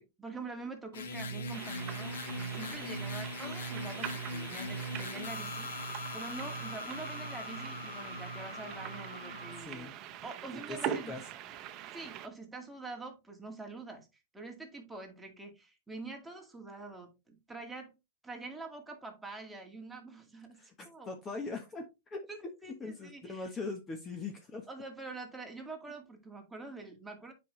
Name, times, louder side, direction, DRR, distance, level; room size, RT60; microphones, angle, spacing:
voice 1, 0.0-9.9 10.2-11.2 11.7-14.1 14.3-18.0 18.2-20.6 20.8-21.1 22.3-23.5 24.7-27.3, right 3 dB, 5° right, 2.1 m, -45 dB
sound 1, 0.9-9.6, left 1 dB, 85° left, 1.9 m, -40 dB
sound 2, 1.5-12.3, right 11 dB, 40° right, 0.9 m, -43 dB
voice 2, 9.6-9.9 10.5-11.2 20.5-22.2 22.8-24.7, left 3 dB, 20° left, 1.2 m, -41 dB
7.5 x 5.4 x 3.2 m
hypercardioid pair, 135°, 0 cm